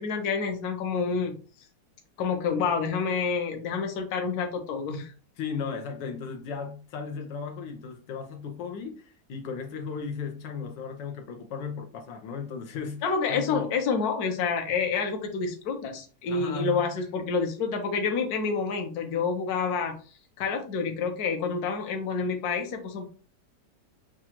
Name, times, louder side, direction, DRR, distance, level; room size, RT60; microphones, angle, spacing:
voice 1, 0.0-1.3 2.2-5.1 13.0-19.9 20.4-23.1, left 5 dB, 65° left, 1.3 m, -28 dB
voice 2, 5.4-13.7 16.3-16.9, left 6 dB, 85° left, 1.5 m, -36 dB
6.3 x 2.4 x 2.9 m
omnidirectional pair, 1.9 m